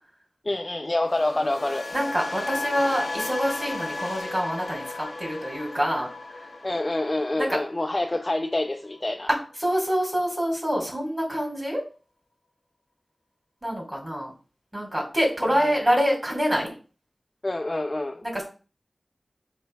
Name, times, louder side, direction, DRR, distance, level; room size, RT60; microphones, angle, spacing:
voice 1, 0.4-1.9 6.6-9.3 17.4-18.4, left 2 dB, 35° left, 0.4 m, -27 dB
sound 1, 1.1-9.2 9.4-9.8, left 2 dB, 55° left, 0.8 m, -35 dB
voice 2, 1.9-6.1 7.4-7.6 9.3-11.8 13.6-14.3 14.7-16.7 18.2-18.4, equal, 15° right, 2.5 m, -26 dB
7.2 x 3.1 x 2.3 m
wide cardioid pair, 60°, 0 cm